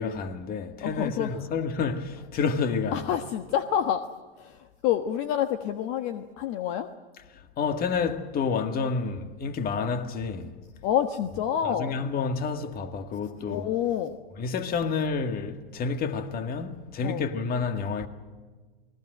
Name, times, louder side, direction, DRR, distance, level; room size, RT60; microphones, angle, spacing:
voice 1, 0.0-3.2 7.3-10.6 11.6-13.7 14.4-18.1, left 5 dB, 30° left, 2.0 m, -29 dB
voice 2, 0.8-1.4 2.9-4.1 4.4-6.9 10.8-11.9 13.5-14.2 17.0-17.2, left 10 dB, 45° left, 1.4 m, -28 dB
28.0 x 20.5 x 7.9 m
hypercardioid pair, 120°, 29 cm